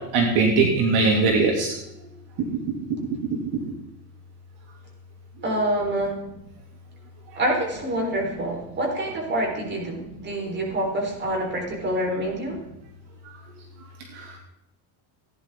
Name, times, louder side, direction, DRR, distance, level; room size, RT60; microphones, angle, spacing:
voice 1, 0.1-1.7 14.1-14.3, right 3 dB, 60° right, 1 dB, 2.5 m, -20 dB
voice 2, 5.4-6.2 7.3-12.6, right 1 dB, 25° right, 0 dB, 4.0 m, -26 dB
17.0 x 10.5 x 3.7 m, 0.84 s
cardioid pair, 140°, 45 cm